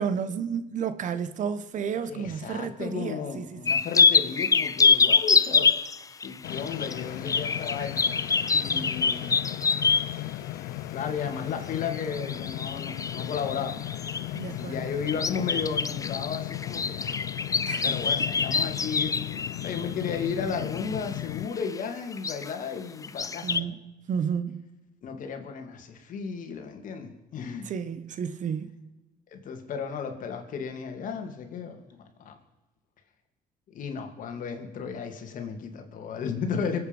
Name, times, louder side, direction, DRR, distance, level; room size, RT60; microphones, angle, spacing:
voice 1, 0.0-3.6 8.7-8.9 14.3-14.9 17.7-17.9 23.4-24.7 27.6-28.9, right 7 dB, 60° right, 1.1 m, -32 dB
voice 2, 2.1-5.7 6.2-8.1 8.5-9.4 10.5-10.6 10.9-13.8 14.5-17.2 17.8-19.2 19.6-23.7 25.0-27.7 29.3-31.8 32.2-32.4 33.7-36.8, left 6 dB, 65° left, 2.5 m, -34 dB
sound 1, 3.7-10.2 11.8-14.4 15.1-21.2 21.6-21.8 22.1-22.5 23.0-23.6, left 5 dB, 25° left, 0.6 m, -25 dB
sound 2, 6.4-21.5, left 15 dB, 90° left, 0.5 m, -36 dB
23.5 x 8.4 x 5.4 m
cardioid pair, 95°, 15 cm